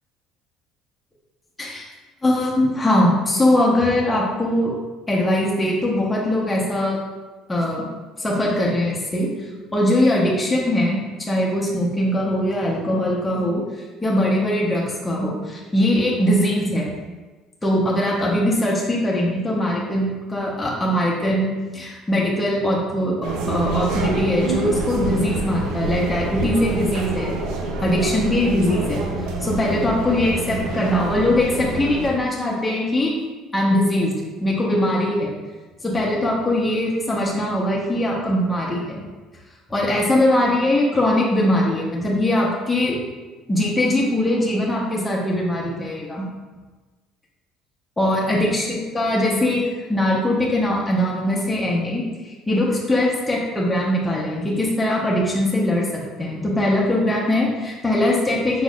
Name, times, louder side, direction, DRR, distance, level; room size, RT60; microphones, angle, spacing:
voice 1, 2.2-4.7 5.1-7.0 7.5-7.8 8.2-9.3 9.7-16.9 17.6-27.3 27.8-29.1 29.4-33.1 33.5-34.1 34.4-35.3 35.8-39.0 39.7-43.0 43.5-46.2 48.0-49.6 49.9-58.6, left 1 dB, 15° left, -5 dB, 0.9 m, -21 dB
sound 1, 23.2-32.1, right 2 dB, 80° right, 0.6 m, -27 dB
5.1 x 4.0 x 2.4 m, 1.3 s
cardioid pair, 110°, 0 cm